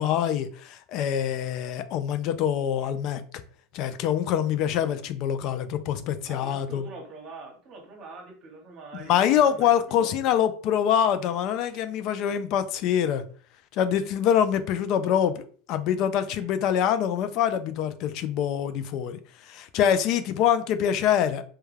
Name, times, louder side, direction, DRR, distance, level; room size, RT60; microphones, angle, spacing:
voice 1, 0.0-3.2 3.7-6.8 9.0-13.2 13.7-21.4, left 9 dB, 55° left, 0.3 m, -25 dB
voice 2, 6.3-9.7 10.0-10.1 16.2-16.5, right 3 dB, 45° right, 0.9 m, -44 dB
2.2 x 2.2 x 3.2 m
hypercardioid pair, 105°, 0 cm